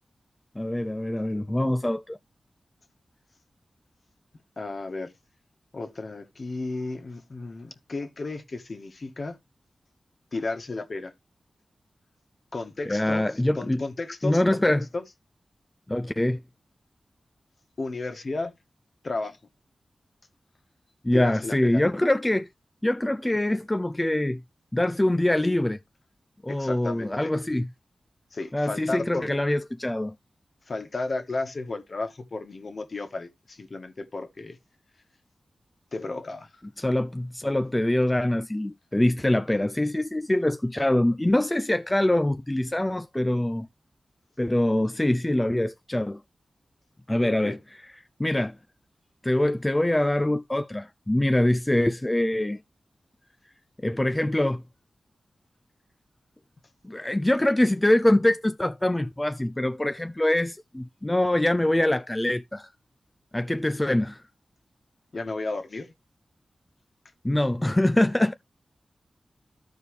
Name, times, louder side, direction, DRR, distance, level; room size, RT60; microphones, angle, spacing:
voice 1, 0.6-2.2 12.9-13.8 14.2-14.8 15.9-16.4 21.0-22.5 22.8-24.4 24.7-25.8 26.4-27.7 28.5-30.1 36.8-43.7 44.4-46.2 47.1-47.6 48.2-48.5 49.2-52.6 53.8-54.6 56.8-62.7 63.3-64.2 67.2-68.3, left 1 dB, 15° left, 0.4 m, -24 dB
voice 2, 4.6-5.1 5.7-9.4 10.3-11.1 12.5-15.0 17.8-18.5 19.0-19.4 21.1-21.8 26.5-27.3 28.3-29.3 30.7-34.6 35.9-36.6 47.2-47.6 65.1-65.9, left 3 dB, 60° left, 1.5 m, -33 dB
13.5 x 4.7 x 3.2 m
wide cardioid pair, 65°, 0 cm